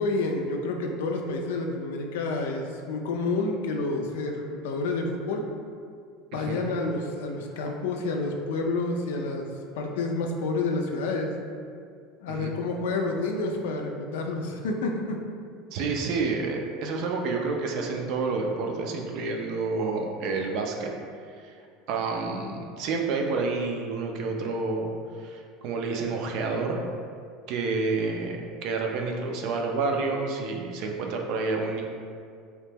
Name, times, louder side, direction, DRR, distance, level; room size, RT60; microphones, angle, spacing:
voice 1, 0.0-5.5 6.3-9.5 9.8-11.3 12.2-15.2, left 3 dB, 90° left, 2 dB, 0.3 m, -29 dB
voice 2, 6.3-6.6 12.3-12.5 15.7-20.9 21.9-24.9 25.2-26.8 27.5-31.8, right 4 dB, 60° right, 2 dB, 0.4 m, -29 dB
2.9 x 2.1 x 3.3 m, 2.2 s
supercardioid pair, 120°, 0 cm